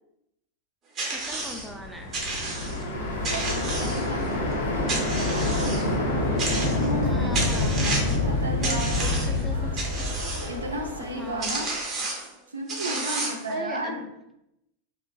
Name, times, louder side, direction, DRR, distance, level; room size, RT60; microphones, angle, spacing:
sound 1, 1.0-1.7 2.1-2.8 3.2-4.3 4.9-5.9 6.4-7.0 7.3-8.2 8.6-9.4 9.8-10.5 11.1-11.2 11.4-12.3 12.7-13.5, right 2 dB, 30° right, 0.7 m, -31 dB
voice 1, 1.1-2.2 2.7-2.8 7.0-8.1 8.4-10.1 11.1-11.7 13.5-14.0, right 1 dB, 5° right, 2 dB, 0.3 m, -39 dB
sound 2, 1.5-11.5, left 2 dB, 55° left, 0.5 m, -27 dB
sound 3, 2.9-11.5, left 1 dB, 85° left, 1.0 m, -40 dB
voice 2, 3.3-6.2 6.6-9.4 10.5-11.7 12.5-14.0, right 1 dB, 75° right, 3 dB, 0.4 m, -34 dB
2.8 x 2.4 x 2.2 m, 0.85 s
figure-of-eight pair, 90°, 0 cm